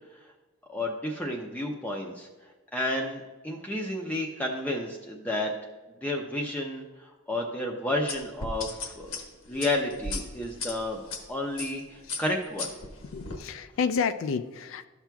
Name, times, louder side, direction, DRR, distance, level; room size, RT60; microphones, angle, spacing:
voice 1, 0.7-2.3 2.7-5.5 6.0-9.2 9.5-11.0 11.3-12.7, left 1 dB, 10° left, -1 dB, 0.5 m, -31 dB
sound 1, 8.1-11.2 11.6-11.8 12.1-13.4, left 3 dB, 85° left, 1.2 m, -36 dB
voice 2, 13.1-14.9, left 6 dB, 70° left, 11 dB, 0.3 m, -30 dB
13.0 x 5.9 x 2.3 m, 1.2 s
head